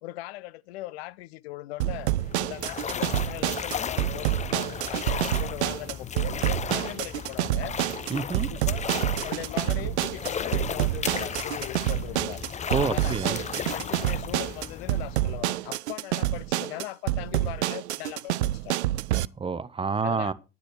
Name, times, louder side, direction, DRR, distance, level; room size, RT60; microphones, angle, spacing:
voice 1, 0.0-2.1 2.4-7.8 8.5-8.9 9.2-12.4 12.9-18.8 20.0-20.3, left 17 dB, 60° left, 0.6 m, -39 dB
sound 1, 1.8-19.3, right 15 dB, 70° right, 0.5 m, -28 dB
sound 2, 1.9-15.7, left 7 dB, 20° left, 0.7 m, -35 dB
voice 2, 8.1-8.5 12.7-13.4 19.4-20.3, right 5 dB, 15° right, 0.8 m, -28 dB
10.5 x 10.0 x 4.6 m
figure-of-eight pair, 70°, 35 cm